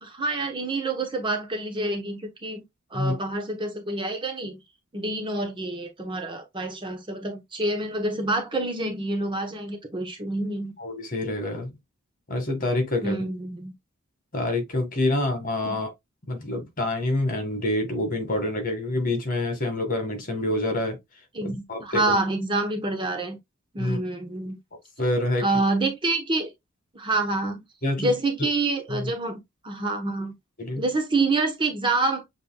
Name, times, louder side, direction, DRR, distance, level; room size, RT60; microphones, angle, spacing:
voice 1, 0.0-2.6 2.9-4.6 4.9-10.7 13.0-13.7 15.6-15.8 21.3-23.4 23.7-24.6 25.4-26.5 26.9-27.6 28.0-30.3 30.8-32.2, right 2 dB, 25° right, 1.0 m, -27 dB
voice 2, 10.8-11.8 12.3-13.2 14.3-15.9 16.3-21.0 21.4-22.2 23.8-24.0 25.0-25.5 27.8-28.1 28.9-29.1 30.6-30.8, left 1 dB, 40° left, 1.7 m, -27 dB
6.9 x 3.4 x 2.2 m
head